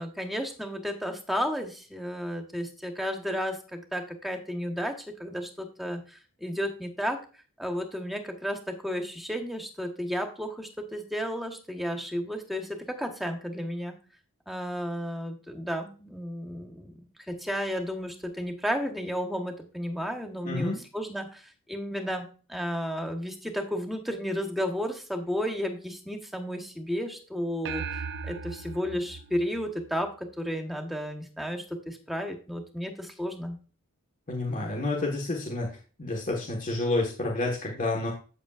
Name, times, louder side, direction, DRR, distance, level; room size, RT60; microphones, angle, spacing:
voice 1, 0.0-7.2 7.6-14.0 14.5-17.0 17.3-33.6, equal, ahead, 3 dB, 1.3 m, -33 dB
voice 2, 20.4-20.8 34.3-35.7 36.0-38.1, left 2 dB, 40° left, -1 dB, 1.5 m, -29 dB
sound 1, 27.6-30.3, right 5 dB, 55° right, 0.5 m, -38 dB
8.3 x 8.2 x 2.5 m, 0.36 s
head